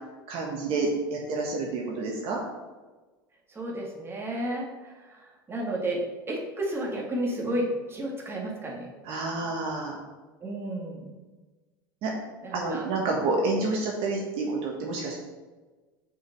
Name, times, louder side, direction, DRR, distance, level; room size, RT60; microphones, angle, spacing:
voice 1, 0.3-2.4 9.0-10.0 12.0-12.1 12.5-15.2, right 3 dB, 50° right, -1 dB, 1.6 m, -29 dB
voice 2, 3.6-4.9 5.5-6.0 6.3-8.9 10.4-11.1 12.4-12.8, right 1 dB, 20° right, -2 dB, 2.2 m, -32 dB
6.3 x 4.9 x 5.4 m, 1.3 s
hypercardioid pair, 90°, 12 cm